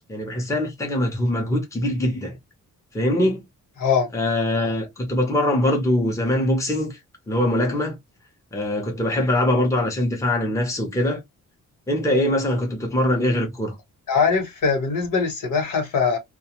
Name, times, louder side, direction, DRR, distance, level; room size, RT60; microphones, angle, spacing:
voice 1, 0.1-2.4 2.9-3.5 4.1-7.0 7.3-8.0 8.5-11.2 11.9-13.8, left 1 dB, 10° left, 0.7 m, -22 dB
voice 2, 14.1-16.2, left 5 dB, 75° left, 1.3 m, -21 dB
2.4 x 2.3 x 2.9 m
wide cardioid pair, 135°, 33 cm